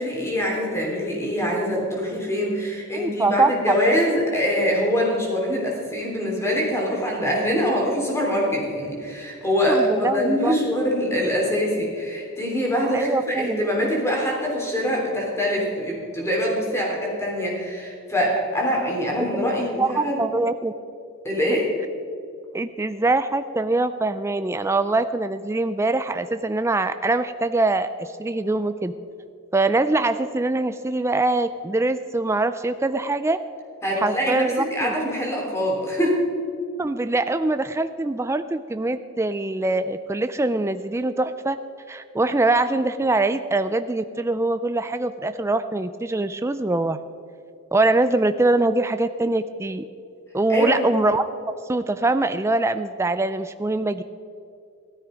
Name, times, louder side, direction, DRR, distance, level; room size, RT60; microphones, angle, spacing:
voice 1, 0.0-20.2 21.2-21.7 33.8-36.2 50.5-50.9, equal, 10° left, -2 dB, 3.3 m, -24 dB
voice 2, 2.9-3.8 9.7-10.6 12.9-13.6 19.2-19.3 19.6-20.7 22.5-28.9 29.5-33.4 34.0-34.9 36.8-41.6 41.9-47.0 47.7-49.8 50.3-51.3 51.7-54.0, right 2 dB, 10° right, 10 dB, 0.3 m, -23 dB
15.5 x 13.0 x 5.1 m, 2.5 s
head